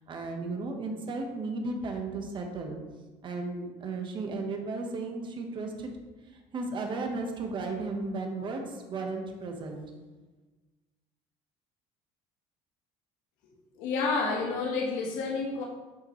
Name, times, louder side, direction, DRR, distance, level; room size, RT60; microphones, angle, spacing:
voice 1, 0.1-2.8 3.2-5.9 6.5-9.8, right 3 dB, 35° right, 3 dB, 1.3 m, -34 dB
voice 2, 13.8-15.6, left 4 dB, 80° left, -2 dB, 1.5 m, -29 dB
8.8 x 6.6 x 3.2 m, 1.3 s
cardioid pair, 135°, 13 cm